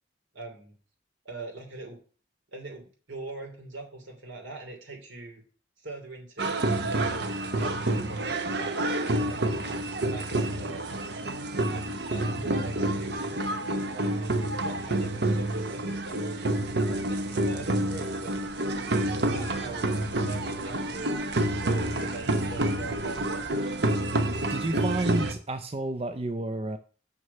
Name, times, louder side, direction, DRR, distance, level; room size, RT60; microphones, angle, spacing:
voice 1, 0.3-0.8 1.2-2.0 2.5-5.4 5.8-9.5 10.0-11.3 11.7-14.2 14.6-18.4 18.7-19.9 20.2-21.2 21.6-23.5, right 2 dB, 70° right, 2 dB, 3.0 m, -42 dB
sound 1, 6.4-25.3, right 1 dB, 55° right, 0.9 m, -28 dB
voice 2, 24.5-26.8, right 2 dB, 30° right, 7 dB, 0.4 m, -30 dB
6.3 x 6.1 x 6.8 m, 0.40 s
head